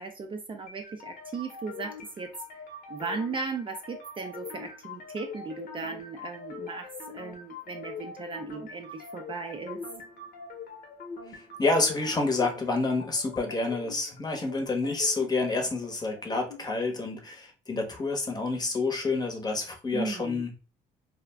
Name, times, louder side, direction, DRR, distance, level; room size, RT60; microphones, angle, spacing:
voice 1, 0.0-2.6 2.9-9.8 19.9-20.4, right 4 dB, 30° right, 4 dB, 0.4 m, -37 dB
sound 1, 0.7-16.7, left 5 dB, 60° left, 0.8 m, -43 dB
voice 2, 11.6-20.5, left 3 dB, 25° left, 4 dB, 0.7 m, -28 dB
2.3 x 2.1 x 3.3 m, 0.34 s
cardioid pair, 110°, 17 cm